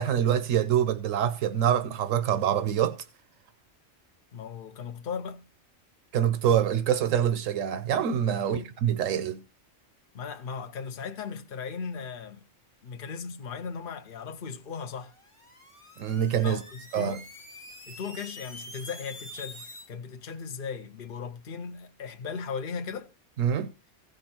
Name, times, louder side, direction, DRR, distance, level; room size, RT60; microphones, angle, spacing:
voice 1, 0.0-3.0 6.1-9.4 16.0-16.6 16.9-17.2 23.4-23.7, right 9 dB, 85° right, 1.1 m, -25 dB
voice 2, 4.3-5.4 8.4-8.7 10.1-12.4 12.8-15.1 16.4-17.3 17.9-23.1, left 6 dB, 45° left, 1.0 m, -37 dB
sound 1, 15.0-19.9, left 1 dB, 25° left, 1.8 m, -46 dB
16.0 x 5.3 x 4.3 m
omnidirectional pair, 1.3 m